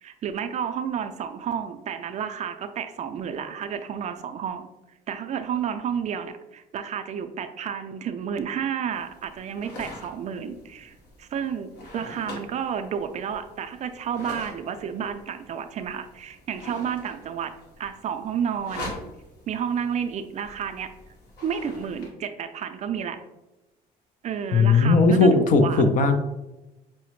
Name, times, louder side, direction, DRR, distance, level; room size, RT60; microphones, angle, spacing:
voice 1, 0.0-4.7 5.1-17.5 17.8-18.9 19.5-20.9 21.4-23.2 24.2-25.8, right 8 dB, 45° right, 8 dB, 0.4 m, -31 dB
sound 1, 8.9-22.1, left 1 dB, 75° left, 1.3 m, -44 dB
voice 2, 24.5-26.1, left 3 dB, 50° left, 7 dB, 0.5 m, -17 dB
5.6 x 2.1 x 3.0 m, 1.0 s
cardioid pair, 110°, 17 cm